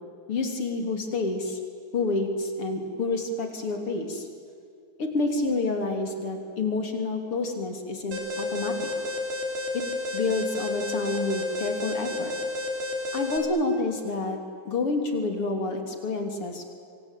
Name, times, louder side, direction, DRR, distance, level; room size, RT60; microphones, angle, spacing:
voice 1, 0.3-1.6 1.9-4.3 5.0-8.9 9.7-9.8 10.1-12.3 13.1-14.4 14.6-16.6, left 3 dB, 35° left, 5 dB, 3.5 m, -28 dB
Alarm, 8.1-13.4, left 2 dB, 65° right, 5.1 m, -31 dB
26.0 x 25.0 x 9.1 m, 2.5 s
omnidirectional pair, 5.1 m